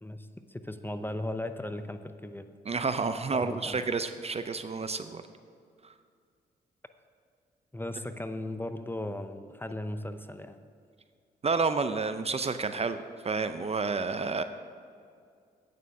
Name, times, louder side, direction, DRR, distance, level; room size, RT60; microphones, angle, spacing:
voice 1, 0.0-2.5 3.3-3.8 7.7-10.6, left 1 dB, 10° left, 9 dB, 0.6 m, -37 dB
voice 2, 2.7-5.2 11.4-14.4, right 4 dB, 35° right, 10 dB, 0.5 m, -30 dB
8.9 x 6.7 x 6.1 m, 2.3 s
supercardioid pair, 50°, 19 cm